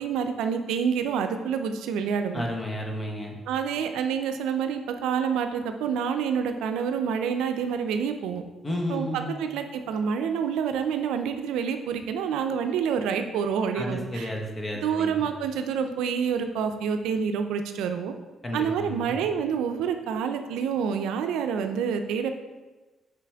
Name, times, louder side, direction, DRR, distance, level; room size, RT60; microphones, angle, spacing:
voice 1, 0.0-2.4 3.5-8.4 8.9-14.3 14.8-18.1 18.5-22.3, right 7 dB, 90° right, 7 dB, 0.4 m, -27 dB
voice 2, 2.3-3.4 8.6-9.4 13.7-15.2 18.4-19.2, left 1 dB, 25° left, 0 dB, 1.2 m, -32 dB
5.8 x 5.1 x 3.5 m, 1.2 s
cardioid pair, 90°, 0 cm